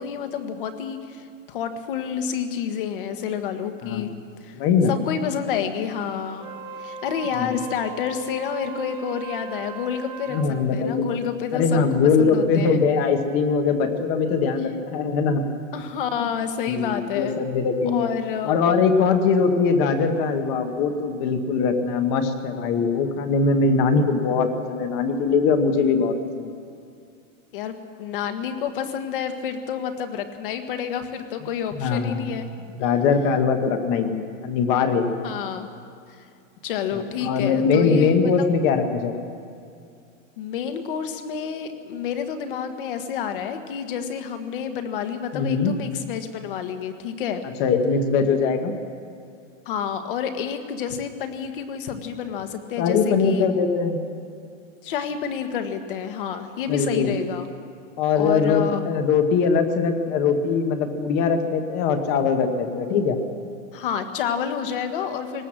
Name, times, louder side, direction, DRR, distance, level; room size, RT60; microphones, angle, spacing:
voice 1, 0.0-4.1 4.4-4.6 4.9-6.5 6.8-11.8 12.2-12.8 15.7-17.4 17.8-18.6 27.5-32.5 35.2-35.7 36.1-36.3 36.6-38.1 40.4-47.4 49.6-53.4 54.8-57.5 58.1-58.8 63.7-65.5, left 8 dB, 40° left, 7 dB, 1.5 m, -29 dB
voice 2, 4.6-4.9 7.4-7.6 10.3-11.1 11.5-15.4 16.7-18.1 18.4-26.5 31.8-32.3 32.8-35.1 36.9-39.2 45.3-45.7 47.6-48.8 52.8-54.0 56.7-57.1 58.0-63.2, left 5 dB, 20° left, 7 dB, 1.0 m, -21 dB
Wind instrument woodwind instrument, 6.3-10.6, right 5 dB, 15° right, 0.7 m, -37 dB
19.0 x 18.5 x 7.5 m, 2.4 s
supercardioid pair, 180°, 39 cm